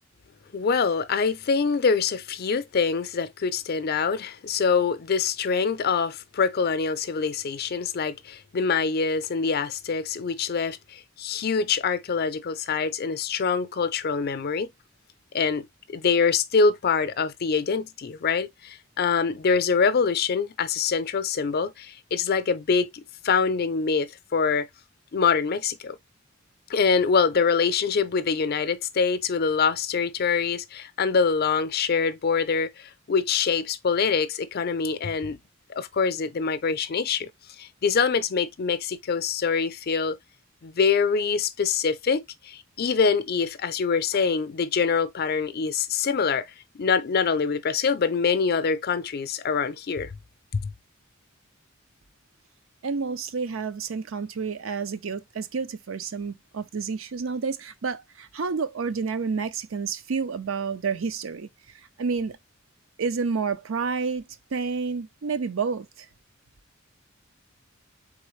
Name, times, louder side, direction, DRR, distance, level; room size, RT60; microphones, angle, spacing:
voice 1, 0.5-14.7 15.3-15.7 15.9-22.9 23.2-24.7 25.1-26.0 26.7-35.4 35.7-37.3 37.6-40.2 40.6-46.5 46.8-50.1 50.5-50.6, left 5 dB, 50° left, 0.5 m, -25 dB
voice 2, 52.8-61.5 62.0-62.4 63.0-64.2 64.5-66.1, right 5 dB, 75° right, 0.5 m, -29 dB
4.2 x 3.8 x 3.1 m
head